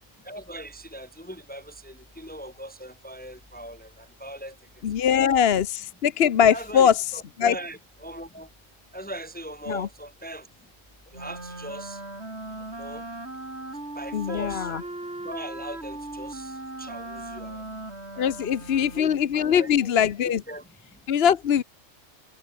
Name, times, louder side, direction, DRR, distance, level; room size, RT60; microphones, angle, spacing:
voice 1, 0.2-4.6 5.0-5.4 6.5-8.5 8.9-10.5 11.1-12.0 12.8-13.0 14.0-14.9 15.2-17.7 18.1-18.3 18.7-19.9 20.3-20.7, right 1 dB, 5° left, 1.9 m, -40 dB
voice 2, 4.8-7.5 9.7-9.9 14.1-14.8 18.2-20.4 21.1-21.6, left 8 dB, 55° left, 1.0 m, -22 dB
Wind instrument woodwind instrument, 11.1-19.4, right 2 dB, 55° right, 5.5 m, -38 dB
omnidirectional pair, 1.3 m